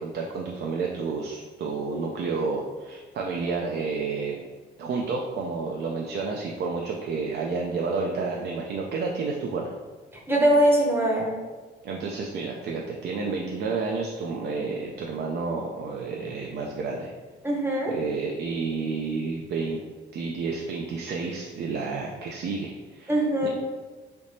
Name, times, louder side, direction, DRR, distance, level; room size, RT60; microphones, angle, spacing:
voice 1, 0.0-4.3 4.8-9.7 11.8-17.1 17.9-19.8 20.1-23.1 23.4-23.5, right 4 dB, 60° right, 0 dB, 0.4 m, -30 dB
voice 2, 10.3-11.3 17.4-17.9 23.1-23.5, right 1 dB, 10° right, -2 dB, 0.7 m, -21 dB
3.5 x 2.9 x 2.6 m, 1.4 s
cardioid pair, 90°, 20 cm